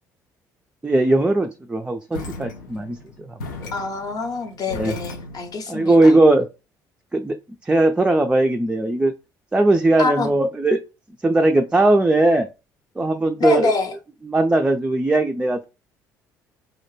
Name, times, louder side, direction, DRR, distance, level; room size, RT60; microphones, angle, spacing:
voice 1, 0.8-3.7 4.7-4.9 5.7-6.5 7.1-7.4 7.6-9.1 9.5-10.8 11.2-12.5 13.0-13.7 14.2-15.7, right 2 dB, 10° right, 0.3 m, -19 dB
sound 1, 2.1-5.6, left 3 dB, 85° left, 0.4 m, -36 dB
voice 2, 3.7-6.1 10.0-10.3 13.4-13.9, left 4 dB, 40° left, 0.7 m, -25 dB
2.4 x 2.1 x 3.1 m
figure-of-eight pair, 50°, 10 cm